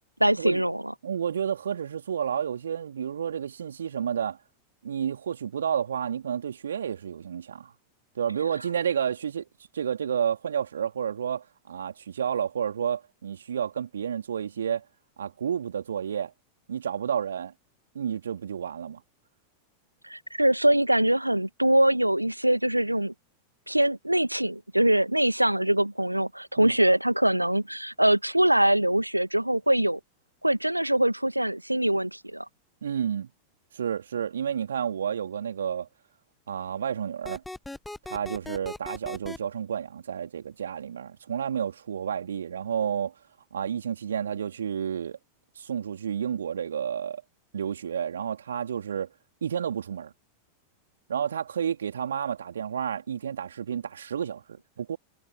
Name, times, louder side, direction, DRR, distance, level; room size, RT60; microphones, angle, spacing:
voice 1, 0.2-0.9 20.0-23.1 23.7-30.0 30.4-32.4, right 1 dB, 85° right, 1.5 m, -23 dB
voice 2, 1.0-4.4 4.8-7.7 8.1-9.5 9.7-14.8 15.2-16.3 16.7-17.5 17.9-19.0 26.6-26.8 32.8-33.3 33.7-35.9 36.5-37.4 38.1-43.1 43.5-45.2 45.6-47.2 47.5-49.1 49.4-50.1 51.1-55.0, right 8 dB, 65° right, 2.8 m, -30 dB
sound 1, 37.2-39.4, left 2 dB, 5° left, 0.8 m, -38 dB
figure-of-eight pair, 90°, 0 cm